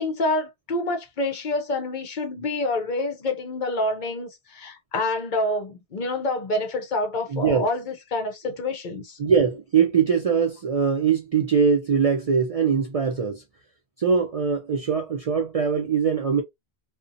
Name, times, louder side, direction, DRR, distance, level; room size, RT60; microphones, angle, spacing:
voice 1, 0.0-9.2, left 2 dB, 55° left, 0.6 m, -27 dB
voice 2, 7.3-7.7 9.2-13.4 14.0-16.4, right 6 dB, 55° right, 0.4 m, -22 dB
2.5 x 2.2 x 2.5 m
omnidirectional pair, 1.0 m